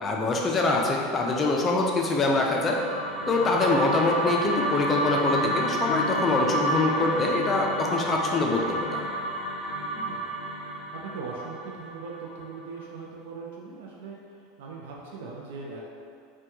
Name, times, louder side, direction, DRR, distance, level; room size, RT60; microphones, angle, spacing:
voice 1, 0.0-2.8 3.3-9.1, left 2 dB, 20° left, 0 dB, 0.4 m, -24 dB
sound 1, 2.3-12.6, right 1 dB, ahead, 1.0 m, -30 dB
voice 2, 9.8-10.4 10.9-14.2 14.6-15.8, right 4 dB, 85° right, -3 dB, 0.4 m, -40 dB
2.9 x 2.2 x 3.4 m, 2.3 s
supercardioid pair, 145°, 0 cm